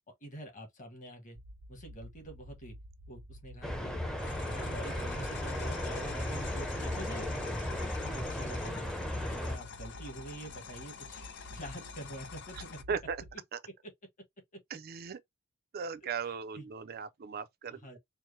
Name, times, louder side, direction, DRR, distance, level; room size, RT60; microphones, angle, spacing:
voice 1, 0.2-1.4 1.7-2.8 3.1-3.9 4.2-7.6 8.0-8.9 9.3-11.2 11.5-12.8 16.2-16.7 17.8-18.0, right 1 dB, 40° left, 1.3 m, -46 dB
sound 1, 1.4-13.3, equal, 85° right, 0.7 m, -51 dB
sound 2, 3.6-9.6, left 1 dB, 5° left, 0.6 m, -35 dB
sound 3, 4.2-12.8, left 7 dB, 60° left, 0.6 m, -47 dB
voice 2, 12.9-13.2 13.5-13.6 14.7-15.2 15.7-18.0, right 6 dB, 45° right, 0.4 m, -37 dB
4.5 x 2.1 x 3.2 m
head